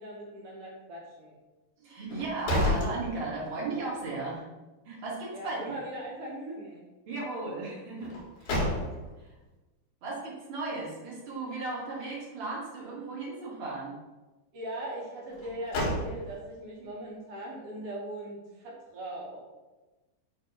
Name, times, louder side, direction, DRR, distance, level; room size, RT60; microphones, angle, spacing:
voice 1, 0.0-1.3 5.3-6.8 14.5-19.4, right 1 dB, 80° right, -4 dB, 1.3 m, -40 dB
voice 2, 1.8-4.4 4.9-5.7 7.1-8.6 9.2-9.3 10.0-13.9, right 3 dB, 45° right, -5 dB, 1.8 m, -36 dB
sound 1, 2.1-3.7 4.1-4.2 8.0-9.3 15.3-16.6, left 1 dB, 90° left, 3.7 m, -31 dB
8.3 x 2.8 x 5.3 m, 1.1 s
omnidirectional pair, 4.3 m